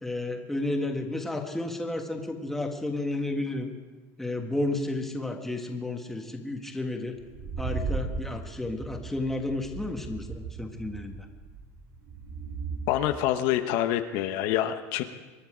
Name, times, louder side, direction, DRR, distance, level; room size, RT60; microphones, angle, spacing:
voice 1, 0.0-3.7 4.2-7.2 7.6-11.3, left 2 dB, 5° left, 3 dB, 1.5 m, -32 dB
sound 1, 7.2-12.8, right 4 dB, 45° right, 4.5 m, -36 dB
voice 2, 12.9-15.0, left 12 dB, 65° left, 8 dB, 1.0 m, -26 dB
24.5 x 10.5 x 5.0 m, 1.3 s
cardioid pair, 140°, 8 cm